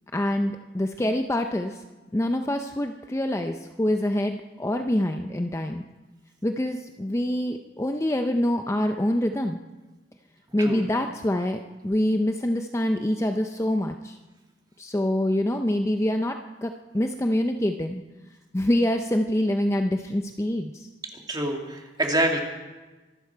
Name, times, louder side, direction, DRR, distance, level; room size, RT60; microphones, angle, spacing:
voice 1, 0.1-1.8 2.1-5.8 6.4-9.6 10.5-14.2 14.8-18.0 18.5-20.9, left 1 dB, 15° left, 5 dB, 0.5 m, -25 dB
voice 2, 21.3-22.4, right 1 dB, 25° right, 1 dB, 2.1 m, -26 dB
24.5 x 11.5 x 4.6 m, 1.2 s
head